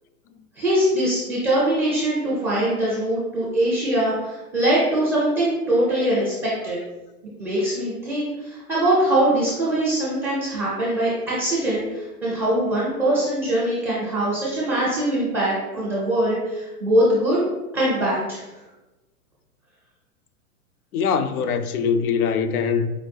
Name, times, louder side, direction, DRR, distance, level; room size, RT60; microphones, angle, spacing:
voice 1, 0.6-6.8 7.4-17.4 17.7-18.4, right 1 dB, 5° right, 0.4 m, -22 dB
voice 2, 20.9-22.9, left 6 dB, 70° left, 0.5 m, -22 dB
4.9 x 2.2 x 3.1 m
hypercardioid pair, 130°, 46 cm